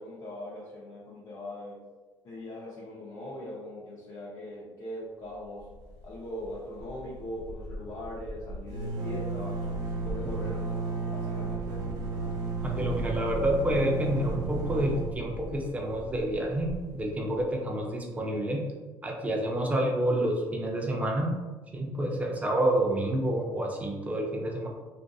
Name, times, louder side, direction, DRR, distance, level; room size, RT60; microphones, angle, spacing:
voice 1, 0.0-1.8 2.2-5.7 6.0-9.6 10.0-11.9, left 1 dB, 45° left, -5 dB, 0.6 m, -40 dB
sound 1, 5.6-6.1 6.4-6.5 6.8-17.5, right 3 dB, 65° right, 0.6 m, -34 dB
voice 2, 12.6-18.6 19.0-21.3 21.7-24.7, right 1 dB, 20° right, 0 dB, 0.5 m, -28 dB
2.5 x 2.4 x 2.3 m, 1.3 s
cardioid pair, 110°, 8 cm